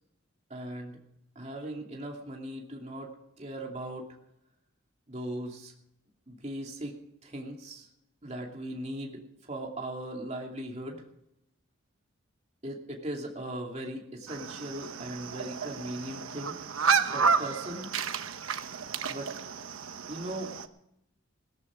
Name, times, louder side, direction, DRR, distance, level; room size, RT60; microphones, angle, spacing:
voice 1, 0.5-1.0 1.3-4.1 5.1-5.7 6.3-7.9 8.2-9.2 9.5-11.0 12.6-16.6 17.1-17.9 19.1-19.3 20.1-20.5, right 1 dB, 30° right, 0 dB, 2.6 m, -38 dB
sound 1, 14.3-20.7, right 5 dB, 75° right, 1.0 m, -31 dB
17.5 x 13.5 x 5.0 m, 0.81 s
head